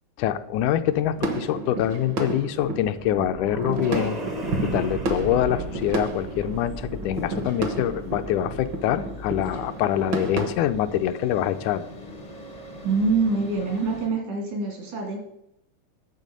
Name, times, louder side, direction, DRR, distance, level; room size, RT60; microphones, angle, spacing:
voice 1, 0.2-4.2 4.6-11.9, left 11 dB, 80° left, 10 dB, 2.0 m, -25 dB
sound 1, 0.9-10.5, right 2 dB, 60° right, 1.2 m, -31 dB
sound 2, 2.6-8.7, right 1 dB, 40° right, 0.5 m, -37 dB
sound 3, 5.3-14.1, left 1 dB, 50° left, 0.4 m, -43 dB
voice 2, 12.8-15.2, right 4 dB, 75° right, 2 dB, 4.1 m, -25 dB
11.0 x 7.0 x 5.2 m, 0.79 s
omnidirectional pair, 3.6 m